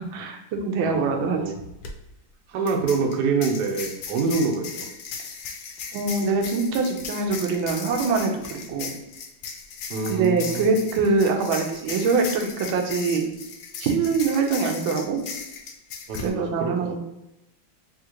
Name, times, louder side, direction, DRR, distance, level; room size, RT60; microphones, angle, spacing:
voice 1, 0.0-1.4 4.3-4.4 5.9-8.9 10.1-13.2 13.8-15.2 16.2-17.0, right 4 dB, 85° right, 2 dB, 1.4 m, -24 dB
voice 2, 0.8-1.6 2.5-4.9 8.7-8.8 9.9-10.7 16.1-17.0, right 4 dB, 70° right, 3 dB, 1.1 m, -26 dB
sound 1, 1.7-1.9 2.7-16.3, left 6 dB, 75° left, 0.9 m, -37 dB
3.7 x 2.8 x 2.9 m, 0.88 s
omnidirectional pair, 2.1 m